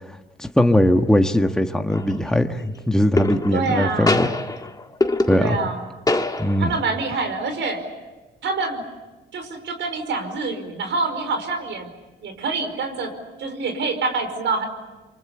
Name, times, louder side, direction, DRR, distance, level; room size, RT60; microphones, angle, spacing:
voice 1, 0.4-4.3 5.3-5.5 6.4-6.7, left 1 dB, 5° left, 5 dB, 1.5 m, -19 dB
sound 1, 1.9-2.3 3.2-3.8 4.1-5.8 6.1-6.8, left 2 dB, 20° left, 1.7 m, -24 dB
voice 2, 3.5-4.3 5.4-5.8 6.6-7.8 8.4-8.8 9.3-11.9 12.2-13.1 13.4-14.7, right 3 dB, 70° right, 6 dB, 5.1 m, -26 dB
27.5 x 24.5 x 8.5 m, 1.2 s
cardioid pair, 90°, 20 cm